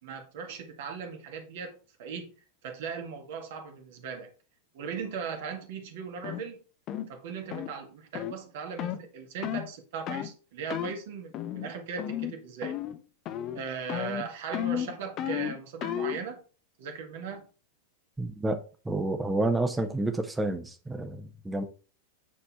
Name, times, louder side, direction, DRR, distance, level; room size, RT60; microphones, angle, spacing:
voice 1, 0.0-2.3 2.6-4.3 4.7-6.6 7.1-12.8 13.5-16.4 16.8-17.5, right 6 dB, 55° right, 1.9 m, -38 dB
sound 1, 6.2-6.4 6.9-7.1 7.5-7.7 8.1-8.4 8.8-9.0 9.4-9.7 10.1-10.3 10.7-10.9 11.3-11.7 12.0-12.3 12.6-13.0 13.3-13.6 13.9-16.2, left 11 dB, 35° left, 0.8 m, -33 dB
voice 2, 18.2-21.6, right 2 dB, 10° right, 1.4 m, -30 dB
9.4 x 4.3 x 4.3 m
figure-of-eight pair, 90°, 0 cm